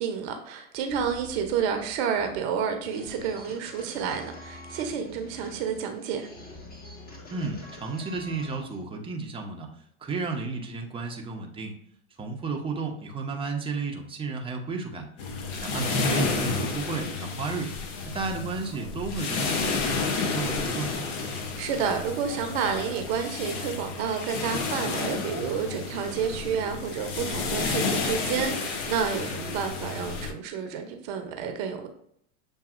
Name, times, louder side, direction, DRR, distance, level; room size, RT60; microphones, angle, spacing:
voice 1, 0.0-6.3 21.6-31.9, right 7 dB, 50° right, 5 dB, 0.8 m, -30 dB
sound 1, 0.9-8.8, left 2 dB, 20° left, 1.3 m, -46 dB
voice 2, 7.3-11.7 12.2-15.1 15.6-17.7 18.0-21.2, right 4 dB, 15° right, 2 dB, 0.7 m, -33 dB
sound 2, 15.2-30.3, left 4 dB, 60° left, 0.8 m, -31 dB
6.9 x 2.7 x 2.5 m, 0.69 s
hypercardioid pair, 100°, 42 cm